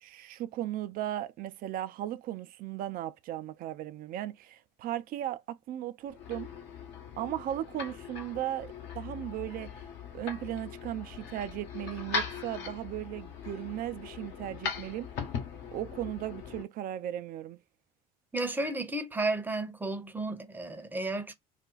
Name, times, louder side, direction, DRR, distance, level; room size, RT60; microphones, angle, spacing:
voice 1, 0.0-6.5 7.2-9.7 10.1-15.1 15.7-17.6, right 12 dB, 45° right, 0.4 m, -36 dB
sound 1, 6.1-16.6, left 5 dB, 55° left, 1.1 m, -40 dB
voice 2, 18.3-21.3, right 2 dB, 10° right, 0.8 m, -33 dB
2.5 x 2.2 x 3.8 m
hypercardioid pair, 65°, 20 cm